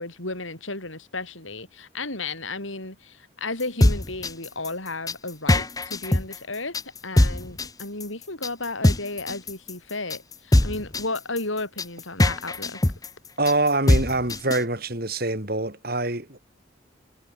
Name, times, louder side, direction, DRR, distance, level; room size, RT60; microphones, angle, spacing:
voice 1, 0.0-6.8 7.0-12.8, left 2 dB, 85° left, 7.9 m, -33 dB
sound 1, 3.6-14.6, left 1 dB, 20° left, 0.8 m, -22 dB
voice 2, 13.4-16.4, right 2 dB, 50° right, 4.1 m, -25 dB
head